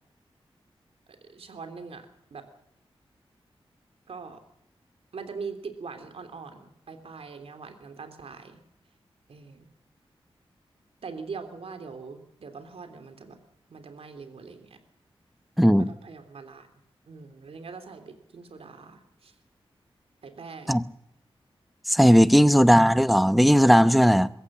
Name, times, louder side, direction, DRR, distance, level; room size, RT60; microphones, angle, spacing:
voice 1, 1.1-2.4 4.1-4.4 5.1-8.6 9.3-9.6 11.0-13.4 13.7-14.8 15.8-16.7 17.1-19.3 20.2-20.8, right 5 dB, 80° right, 3.2 m, -42 dB
voice 2, 15.6-15.9 20.7-20.8 21.9-24.3, equal, ahead, 0.8 m, -17 dB
22.5 x 15.0 x 8.6 m
wide cardioid pair, 95°, 10 cm